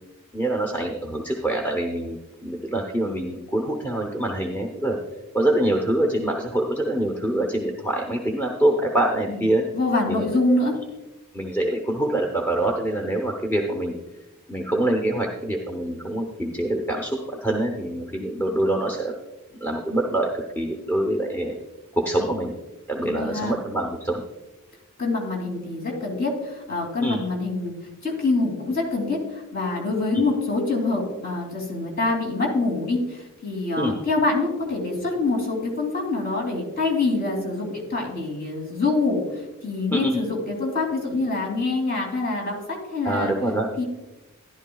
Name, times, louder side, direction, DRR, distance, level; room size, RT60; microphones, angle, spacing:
voice 1, 0.3-5.0 5.3-9.6 10.1-10.2 11.3-13.9 14.5-19.1 19.6-21.6 21.9-22.5 22.9-24.2 27.0-27.2 30.1-30.2 33.8-34.0 39.9-40.2 43.0-43.7, right 1 dB, 10° left, 1 dB, 0.8 m, -25 dB
voice 2, 9.7-10.7 23.0-23.6 25.0-27.7 28.0-43.3 43.8-43.9, left 3 dB, 45° left, 0 dB, 2.7 m, -25 dB
13.5 x 11.0 x 2.3 m, 1.0 s
head